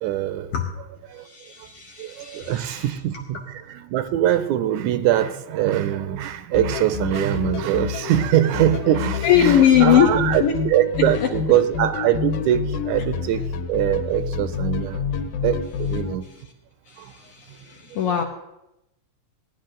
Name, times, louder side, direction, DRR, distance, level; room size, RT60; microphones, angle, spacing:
voice 1, 0.0-0.5 2.0-3.1 3.5-13.4 13.7-15.0 15.4-16.2, right 12 dB, 80° right, 12 dB, 1.9 m, -22 dB
voice 2, 1.2-2.8 9.2-10.6 16.9-18.2, left 9 dB, 70° left, 3 dB, 1.4 m, -20 dB
sound 1, 6.5-16.2, left 6 dB, 90° left, 2.4 m, -28 dB
16.5 x 10.0 x 3.8 m, 0.91 s
omnidirectional pair, 3.5 m